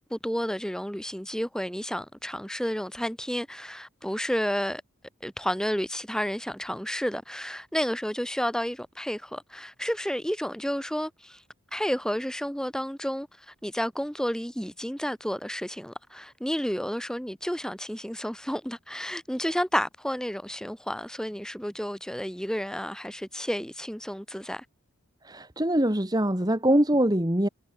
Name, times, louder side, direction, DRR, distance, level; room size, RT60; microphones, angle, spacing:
voice 1, 0.1-4.8 5.2-11.4 11.7-24.6, equal, 5° left, 2.9 m, -31 dB
voice 2, 25.2-27.5, right 1 dB, 15° right, 2.0 m, -23 dB
head